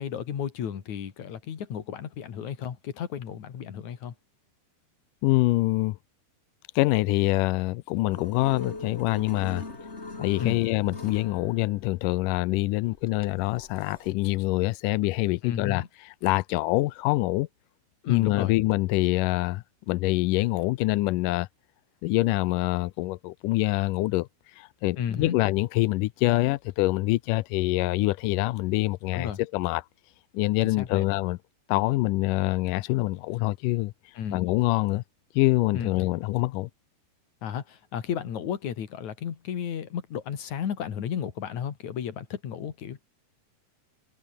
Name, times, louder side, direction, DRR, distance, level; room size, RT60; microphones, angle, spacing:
voice 1, 0.0-4.1 10.4-10.6 15.4-15.9 18.0-18.5 25.0-25.4 29.1-29.4 30.6-31.0 34.1-34.4 35.7-35.9 37.4-43.0, left 8 dB, 50° left, 3.3 m, -33 dB
voice 2, 5.2-6.0 6.8-9.9 10.2-17.5 18.1-21.5 22.0-24.3 24.6-29.8 30.3-31.4 31.7-33.9 34.3-35.0 35.4-36.7, left 19 dB, 85° left, 1.9 m, -25 dB
sound 1, 8.1-14.1, left 3 dB, 20° left, 3.1 m, -41 dB
omnidirectional pair, 4.5 m